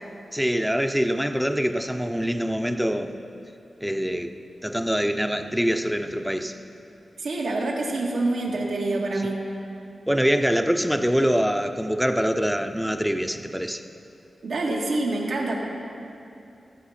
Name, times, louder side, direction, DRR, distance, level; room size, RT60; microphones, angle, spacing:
voice 1, 0.3-3.1 3.8-4.3 4.6-6.6 10.1-13.8, equal, ahead, 7 dB, 0.5 m, -24 dB
voice 2, 7.2-9.4 14.4-15.6, right 2 dB, 90° right, -2 dB, 1.8 m, -26 dB
15.5 x 7.8 x 5.7 m, 2.6 s
wide cardioid pair, 155°, 0 cm